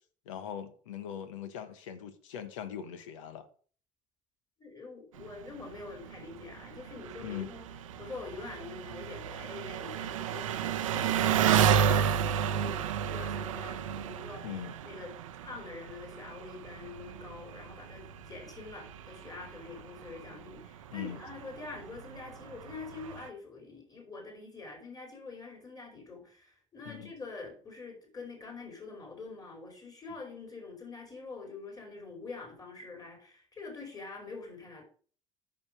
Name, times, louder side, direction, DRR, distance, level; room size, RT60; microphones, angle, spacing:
voice 1, 0.3-3.5 7.2-7.5 14.4-14.8 20.9-21.2 26.8-27.1, left 9 dB, 75° left, 1.2 m, -41 dB
voice 2, 4.6-7.6 8.0-14.5 14.8-15.1 15.4-34.8, left 3 dB, 20° left, 4.4 m, -45 dB
Engine, 5.2-23.3, right 8 dB, 80° right, 0.7 m, -33 dB
8.7 x 6.4 x 6.3 m
figure-of-eight pair, 55°, 17 cm